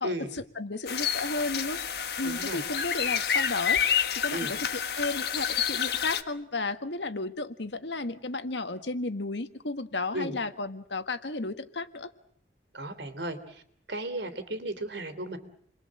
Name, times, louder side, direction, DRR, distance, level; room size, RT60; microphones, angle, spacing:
voice 1, 0.0-1.8 2.2-3.8 4.2-4.6 4.9-12.1, left 3 dB, 85° left, 9 dB, 1.7 m, -33 dB
sound 1, 0.9-6.2, left 8 dB, 60° left, 1.6 m, -29 dB
voice 2, 2.2-2.6 4.3-4.5 10.1-10.4 12.7-13.6 13.9-15.4, right 1 dB, 80° right, 10 dB, 3.3 m, -35 dB
29.0 x 22.5 x 7.7 m, 0.64 s
head